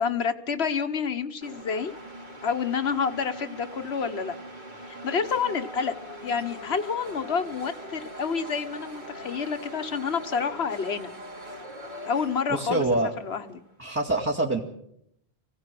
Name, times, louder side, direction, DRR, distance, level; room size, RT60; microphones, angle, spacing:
voice 1, 0.0-1.9 2.4-4.4 4.9-5.9 6.2-11.1 12.1-12.8 13.2-13.6, left 6 dB, 90° left, 9 dB, 1.5 m, -28 dB
sound 1, 1.4-13.7, equal, 50° right, 3.5 m, -42 dB
voice 2, 12.5-13.1 13.8-14.6, right 2 dB, 10° right, -4 dB, 2.1 m, -25 dB
24.0 x 16.5 x 7.7 m, 0.76 s
omnidirectional pair, 1.0 m